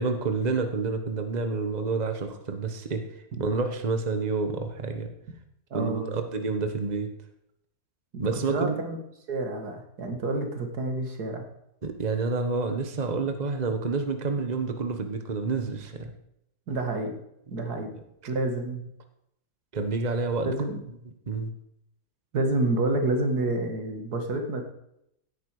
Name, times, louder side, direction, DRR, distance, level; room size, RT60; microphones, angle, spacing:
voice 1, 0.0-3.0 3.4-5.1 5.7-7.1 8.2-8.8 11.8-16.1 17.7-17.9 19.7-20.5 21.3-21.5, right 4 dB, 30° right, 7 dB, 1.3 m, -28 dB
voice 2, 5.7-6.3 8.1-9.0 9.3-11.5 16.7-17.2 17.5-17.9 18.3-18.8 20.4-20.8 22.3-24.6, right 2 dB, 85° right, 4 dB, 2.4 m, -28 dB
17.0 x 9.3 x 4.9 m, 0.79 s
omnidirectional pair, 1.6 m